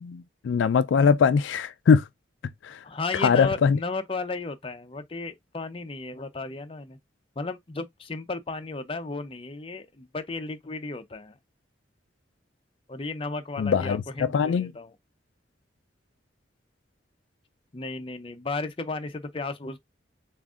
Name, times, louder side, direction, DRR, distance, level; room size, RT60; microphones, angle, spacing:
voice 1, 0.0-2.0 2.6-2.8 3.2-3.8 13.6-14.7, left 6 dB, 80° left, 0.3 m, -22 dB
voice 2, 2.8-7.0 7.4-11.4 12.9-14.9 17.7-19.8, left 3 dB, 30° left, 0.5 m, -34 dB
7.1 x 2.5 x 2.4 m
head